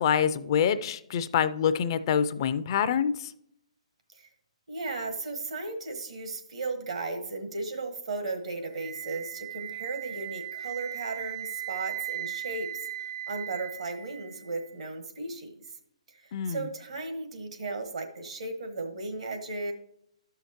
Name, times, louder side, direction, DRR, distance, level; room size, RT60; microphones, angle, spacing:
voice 1, 0.0-3.3 16.3-16.6, left 8 dB, 45° left, 12 dB, 0.4 m, -26 dB
voice 2, 4.7-15.5 16.1-19.7, right 3 dB, 70° right, 5 dB, 1.3 m, -36 dB
Wind instrument woodwind instrument, 8.7-14.7, right 14 dB, 40° right, 0.5 m, -38 dB
12.0 x 5.7 x 2.9 m, 0.75 s
figure-of-eight pair, 135°, 3 cm